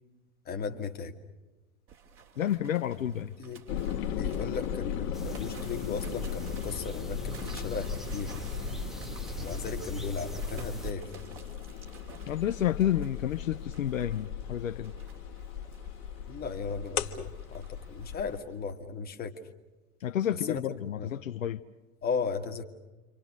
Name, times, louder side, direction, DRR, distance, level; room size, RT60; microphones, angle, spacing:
voice 1, 0.5-1.1 3.4-3.6 4.1-8.4 9.4-11.1 16.3-19.4 20.5-20.6 21.0-21.1 22.0-22.6, left 5 dB, 20° left, 1.8 m, -36 dB
sound 1, 1.9-18.7, right 6 dB, 30° right, 2.8 m, -54 dB
voice 2, 2.4-3.3 12.3-14.9 20.0-21.6, left 11 dB, 65° left, 0.8 m, -30 dB
sound 2, 3.7-18.4, left 9 dB, 35° left, 1.6 m, -38 dB
sound 3, 5.1-10.9, right 2 dB, ahead, 0.8 m, -40 dB
28.5 x 25.5 x 6.5 m
figure-of-eight pair, 95°, 42 cm